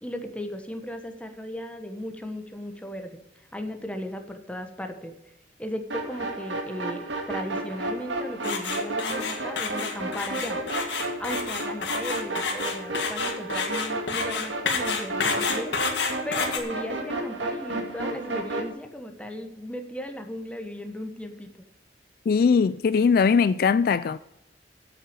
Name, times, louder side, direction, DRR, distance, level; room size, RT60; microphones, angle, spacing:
voice 1, 0.0-3.2 3.5-5.1 5.6-10.6 11.2-15.7 16.2-21.5, left 1 dB, 5° left, 1.2 m, -36 dB
sound 1, 5.9-18.7, right 2 dB, 85° right, 2.2 m, -32 dB
sound 2, 8.4-16.6, left 5 dB, 80° left, 1.8 m, -29 dB
voice 2, 22.3-24.2, left 5 dB, 55° left, 0.3 m, -20 dB
8.3 x 7.6 x 8.9 m
head